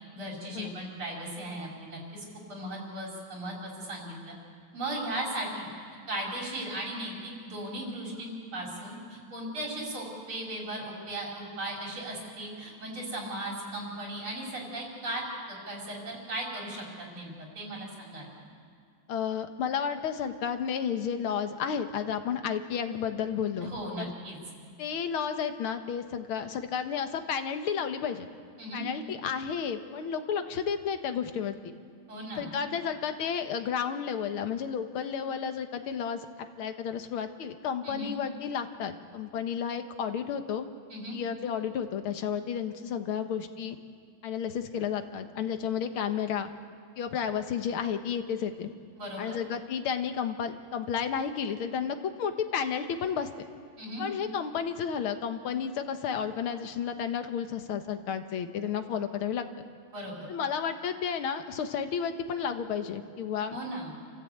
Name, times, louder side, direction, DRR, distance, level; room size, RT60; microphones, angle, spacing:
voice 1, 0.1-2.2 2.5-4.3 4.7-5.7 6.1-18.3 23.6-24.4 28.6-28.9 32.1-32.5 37.8-38.1 40.9-41.2 49.0-49.4 53.8-54.1 59.9-60.3 63.5-63.9, right 1 dB, 90° right, -2 dB, 5.6 m, -37 dB
voice 2, 19.1-24.1 24.8-28.3 28.7-31.7 32.4-36.3 36.6-40.7 41.1-43.8 44.2-46.5 47.0-48.7 49.2-53.3 54.0-59.5 60.3-63.6, left 7 dB, 90° left, 8 dB, 2.0 m, -32 dB
28.0 x 15.0 x 8.6 m, 2.2 s
omnidirectional pair, 2.2 m